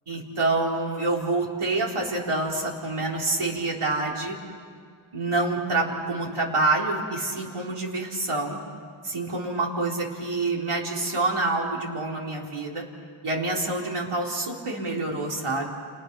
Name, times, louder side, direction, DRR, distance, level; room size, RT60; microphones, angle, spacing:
voice 1, 0.1-4.4 5.1-8.6 9.0-12.8 13.2-15.7, right 2 dB, 85° right, -2 dB, 4.0 m, -27 dB
29.5 x 29.5 x 6.1 m, 2.2 s
wide cardioid pair, 70°, 49 cm